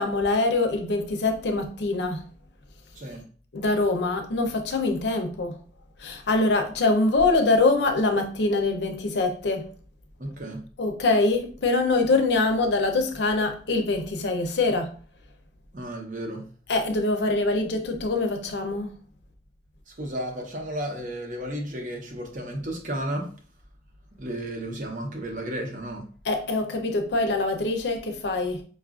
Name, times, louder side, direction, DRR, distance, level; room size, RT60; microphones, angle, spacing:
voice 1, 0.0-2.2 3.5-5.6 6.0-9.7 10.8-14.9 16.7-18.9 26.2-28.6, left 3 dB, 75° left, 0.6 m, -24 dB
voice 2, 10.2-10.6 15.7-16.5 19.9-23.3 24.2-26.1, right 1 dB, 45° right, 0.8 m, -33 dB
5.0 x 2.4 x 2.4 m
head